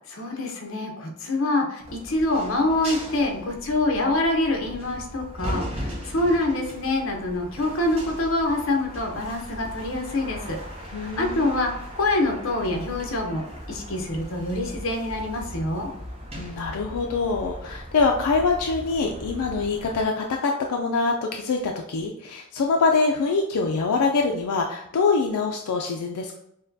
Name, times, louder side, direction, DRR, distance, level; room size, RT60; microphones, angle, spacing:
voice 1, 0.1-10.6 11.2-13.4 13.7-15.9, left 2 dB, 65° left, 1 dB, 0.8 m, -25 dB
sound 1, 1.8-20.0, equal, 25° right, 0.6 m, -38 dB
voice 2, 10.9-11.5 16.4-26.4, left 4 dB, 90° left, 2 dB, 0.4 m, -24 dB
6.2 x 2.2 x 2.6 m, 0.76 s
head